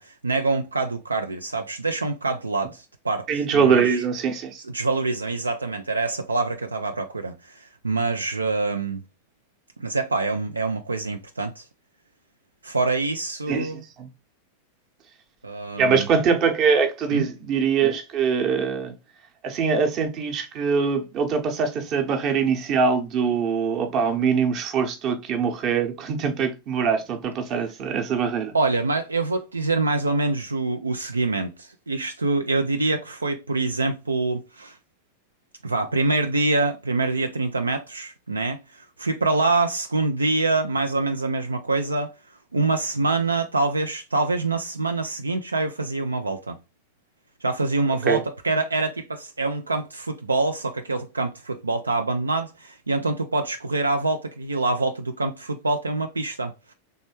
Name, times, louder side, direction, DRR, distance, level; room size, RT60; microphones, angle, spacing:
voice 1, 0.0-4.0 4.7-9.0 9.8-11.7 12.6-13.8 15.4-16.1 17.1-17.3 28.5-34.8 35.6-42.1 42.5-46.6 47.4-56.7, right 3 dB, 80° right, 0.3 m, -25 dB
voice 2, 3.3-4.6 13.5-13.7 14.0-14.1 15.8-18.9 19.4-28.5 48.1-48.2, right 6 dB, 35° right, 0.8 m, -23 dB
3.3 x 3.1 x 3.0 m
figure-of-eight pair, 90°, 0 cm